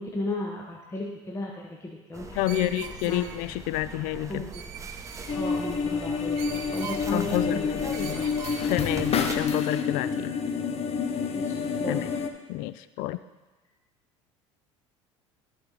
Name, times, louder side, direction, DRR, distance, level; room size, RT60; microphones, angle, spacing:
voice 1, 0.0-2.7 3.0-3.3 4.3-4.5 5.3-8.3 8.6-8.7 11.3-12.1, left 1 dB, 20° left, -1 dB, 1.1 m, -35 dB
sound 1, 2.1-9.5, right 4 dB, 20° right, 0.9 m, -41 dB
voice 2, 2.4-4.4 6.8-8.3 8.7-10.3 11.9-12.1 12.5-13.2, left 15 dB, 60° left, 14 dB, 0.4 m, -29 dB
Screech, 2.4-3.5 4.5-5.4 6.4-7.0 7.9-8.7, right 9 dB, 65° right, 0.7 m, -42 dB
sound 2, 5.3-12.3, left 5 dB, 40° left, 0.9 m, -28 dB
13.5 x 4.5 x 3.9 m, 1.2 s
hypercardioid pair, 70°, 15 cm